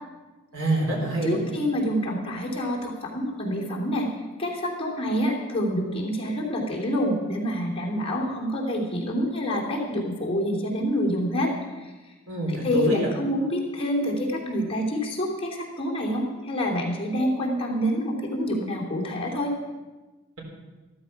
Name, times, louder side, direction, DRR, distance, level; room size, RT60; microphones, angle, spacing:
voice 1, 0.5-1.4 12.3-13.1, right 2 dB, 80° right, 0 dB, 4.1 m, -26 dB
voice 2, 1.2-4.1 4.4-11.9 12.5-19.5, equal, 25° left, -2 dB, 3.0 m, -27 dB
14.0 x 13.5 x 5.9 m, 1.2 s
head